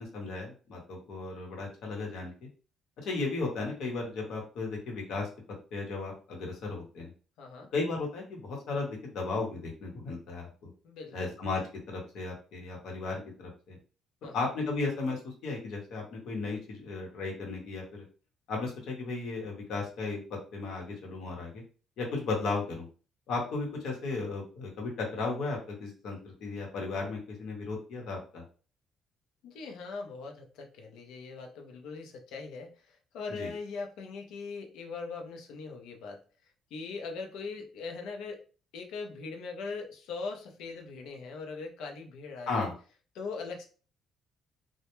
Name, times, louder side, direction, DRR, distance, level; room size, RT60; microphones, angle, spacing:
voice 1, 0.0-2.5 3.0-5.3 5.7-7.1 7.7-10.7 11.1-11.6 11.9-13.8 14.3-18.0 18.5-21.6 22.0-22.9 23.3-28.4 33.3-33.5 42.5-42.7, left 3 dB, 65° left, 0 dB, 0.9 m, -35 dB
voice 2, 7.4-7.7 10.8-11.3 14.2-14.5 29.4-36.2 36.7-38.5 38.7-42.7 43.1-43.6, left 4 dB, 85° left, 3 dB, 0.5 m, -40 dB
2.1 x 2.1 x 2.9 m, 0.37 s
cardioid pair, 155°, 0 cm